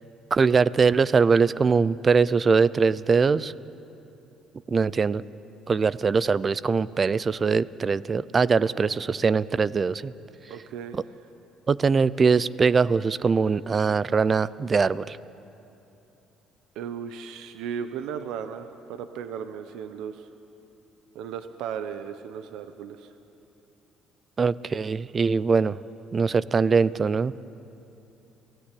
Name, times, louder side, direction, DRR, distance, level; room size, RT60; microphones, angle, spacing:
voice 1, 0.3-3.5 4.7-5.2 5.7-10.1 10.9-11.0 11.7-15.2 24.4-25.8 26.1-27.4, right 5 dB, 30° right, 19 dB, 0.5 m, -22 dB
voice 2, 10.5-11.0 16.7-20.3 21.1-23.1, right 7 dB, 80° right, 9 dB, 1.1 m, -36 dB
28.5 x 17.5 x 8.5 m, 2.9 s
cardioid pair, 120°, 0 cm